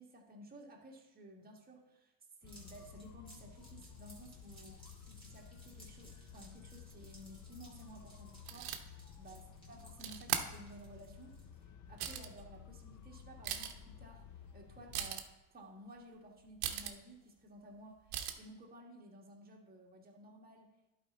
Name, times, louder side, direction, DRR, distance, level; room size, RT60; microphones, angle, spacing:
voice 1, 0.0-2.1 2.4-8.8 9.2-20.7, right 1 dB, 20° right, 0 dB, 1.5 m, -55 dB
sound 1, 2.4-15.2, left 9 dB, 40° left, 0.6 m, -55 dB
sound 2, 2.5-11.6, right 1 dB, 10° left, 2.4 m, -61 dB
sound 3, 8.5-8.8 10.0-10.4 11.3-11.4 11.9-12.4 12.9-13.0 13.3-13.8 14.9-15.3 16.6-16.9 18.1-18.3, right 10 dB, 55° right, 0.9 m, -38 dB
11.0 x 4.6 x 4.1 m, 1.0 s
supercardioid pair, 120°, 44 cm